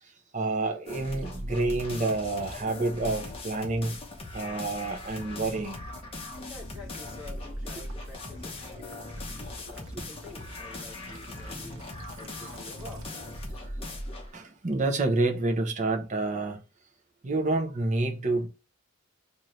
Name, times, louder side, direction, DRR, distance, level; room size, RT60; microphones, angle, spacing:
voice 1, 0.3-4.0 4.3-5.8 14.3-16.6 17.2-18.5, right 2 dB, 35° right, 0.7 m, -28 dB
sound 1, 0.9-14.3, left 1 dB, 25° left, 0.9 m, -40 dB
Gurgling / Liquid, 1.1-13.7, equal, 70° right, 1.0 m, -48 dB
voice 2, 6.5-11.8 12.2-13.1, left 3 dB, 5° right, 1.9 m, -48 dB
4.1 x 2.7 x 3.1 m
head